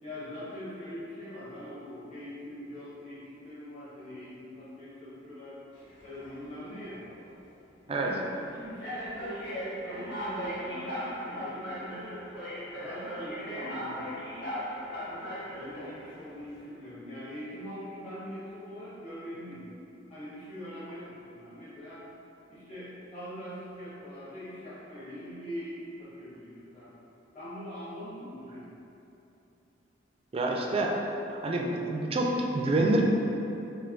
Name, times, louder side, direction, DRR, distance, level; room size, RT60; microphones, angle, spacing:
voice 1, 0.0-5.6 6.0-7.0 7.8-12.3 12.7-14.1 15.1-19.7 20.1-22.1 22.5-26.9 27.3-28.8, equal, 40° left, -14 dB, 1.1 m, -42 dB
sound 1, 5.8-6.3 7.1-7.3 8.1-8.2 8.8-16.1, equal, 65° left, 0.9 m, -38 dB
voice 2, 30.3-31.0 31.3-33.0, right 2 dB, 30° right, 0 dB, 0.3 m, -27 dB
3.4 x 2.7 x 3.7 m, 2.9 s
head